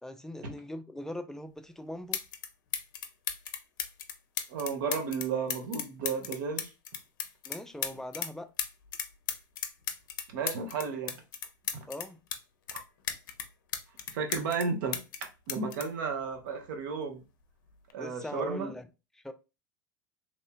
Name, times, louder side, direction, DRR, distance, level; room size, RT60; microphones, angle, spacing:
voice 1, 0.0-2.2 7.5-8.5 11.9-12.2 18.0-18.9 19.1-19.3, left 1 dB, 5° left, 0.4 m, -40 dB
sound 1, 1.6-1.7 2.1-2.5 2.7-8.3 8.6-12.4 12.7-14.7 14.9-16.8 17.7-17.9, left 9 dB, 70° left, 0.5 m, -36 dB
voice 2, 4.5-6.7 10.3-11.1 11.7-11.9 14.1-15.0 15.5-17.2 17.9-18.7, right 5 dB, 65° right, 0.9 m, -33 dB
3.2 x 2.7 x 2.2 m
hypercardioid pair, 80°, 11 cm